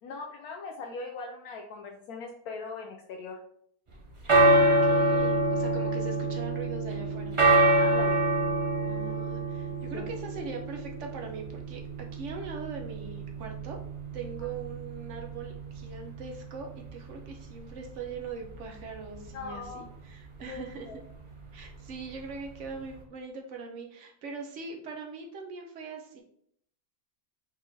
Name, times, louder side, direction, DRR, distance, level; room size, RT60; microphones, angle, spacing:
voice 1, 0.0-3.4 7.8-8.2 9.9-10.1 14.4-14.5 19.3-19.9 20.5-21.0, left 4 dB, 75° left, 1 dB, 1.1 m, -40 dB
sound 1, 3.9-23.0, right 1 dB, 35° right, 0.5 m, -27 dB
voice 2, 4.3-7.4 8.8-11.8 12.1-13.8 14.1-20.9 21.5-26.2, right 4 dB, 55° right, 2 dB, 1.1 m, -41 dB
4.8 x 4.0 x 2.7 m, 0.65 s
omnidirectional pair, 1.6 m